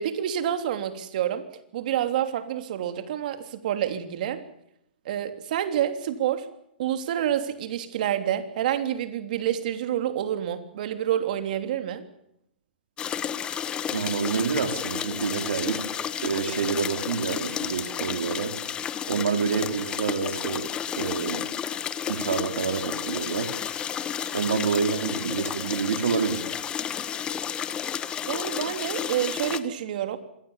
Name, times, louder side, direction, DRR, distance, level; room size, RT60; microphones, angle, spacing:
voice 1, 0.0-1.4 1.7-4.4 5.0-6.5 6.8-12.0 28.3-30.2, right 10 dB, 55° right, 8 dB, 3.1 m, -28 dB
sound 1, 13.0-29.6, left 8 dB, 15° left, 1.2 m, -32 dB
voice 2, 13.9-18.5 19.1-20.7 21.0-21.4 22.1-23.5 24.3-26.5, right 6 dB, 80° right, 7 dB, 3.9 m, -28 dB
26.5 x 21.0 x 7.3 m, 0.75 s
hypercardioid pair, 145°, 5 cm